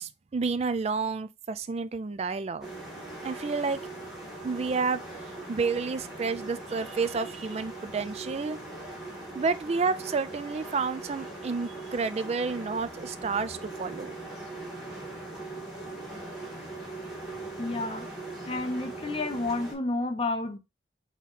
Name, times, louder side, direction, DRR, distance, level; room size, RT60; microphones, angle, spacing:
voice 1, 0.0-2.7 3.2-3.8 4.4-5.0 5.5-8.6 9.3-14.1, right 4 dB, 35° right, 0.4 m, -30 dB
sound 1, 2.6-19.7, right 2 dB, 5° right, 1.6 m, -40 dB
voice 2, 17.6-18.1 18.5-20.6, left 2 dB, 30° left, 0.6 m, -30 dB
4.2 x 3.0 x 3.9 m
head